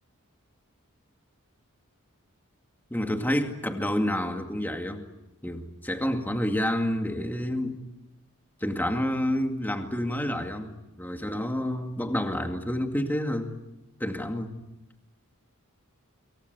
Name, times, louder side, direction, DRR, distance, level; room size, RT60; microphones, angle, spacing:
voice 1, 2.9-5.0 5.4-7.9 8.6-13.5 14.0-14.6, left 1 dB, 10° left, 5 dB, 2.2 m, -29 dB
27.5 x 24.0 x 8.2 m, 0.95 s
head